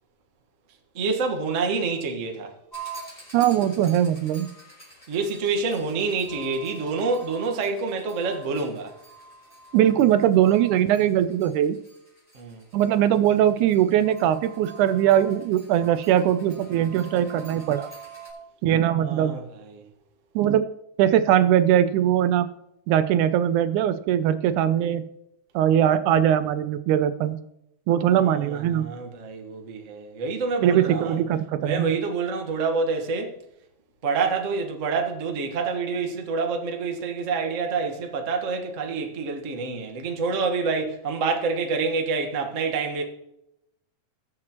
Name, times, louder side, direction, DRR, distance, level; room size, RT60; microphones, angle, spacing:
voice 1, 0.9-2.5 5.1-8.9 12.3-12.6 18.9-19.8 28.1-31.2 31.6-33.3 34.0-43.0, right 4 dB, 50° right, 0.9 m, -27 dB
sound 1, 2.7-18.3, right 5 dB, 5° left, 5.1 m, -45 dB
voice 2, 3.3-4.5 9.7-11.8 12.7-17.9 18.6-19.3 20.4-20.6 21.0-22.5 22.9-25.1 25.6-27.4 27.9-28.9 30.6-32.0, right 10 dB, 80° right, 2.0 m, -21 dB
20.5 x 7.8 x 3.0 m
omnidirectional pair, 3.6 m